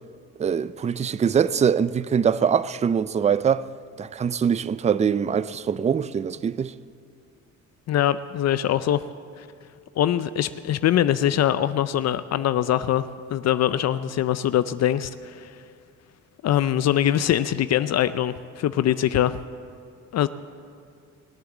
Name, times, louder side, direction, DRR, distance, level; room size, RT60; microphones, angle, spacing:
voice 1, 0.4-3.6 4.0-6.7, right 7 dB, 25° right, 0.4 m, -23 dB
voice 2, 7.9-9.0 9.4-9.5 10.0-15.5 16.4-19.4 20.1-20.3, left 11 dB, 60° left, 0.5 m, -23 dB
21.0 x 7.8 x 7.3 m
cardioid pair, 90°, 30 cm